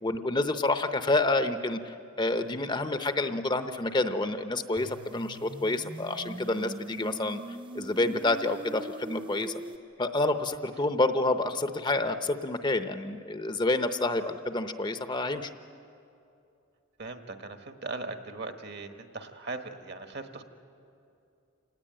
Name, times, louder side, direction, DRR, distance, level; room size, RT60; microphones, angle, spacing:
voice 1, 0.0-9.6 10.0-15.5, left 2 dB, 25° left, 9 dB, 0.7 m, -28 dB
sound 1, 4.8-9.8, right 2 dB, 25° right, 0.7 m, -42 dB
voice 2, 17.0-20.4, right 3 dB, 55° right, 7 dB, 1.4 m, -39 dB
27.5 x 19.0 x 8.9 m, 2.6 s
head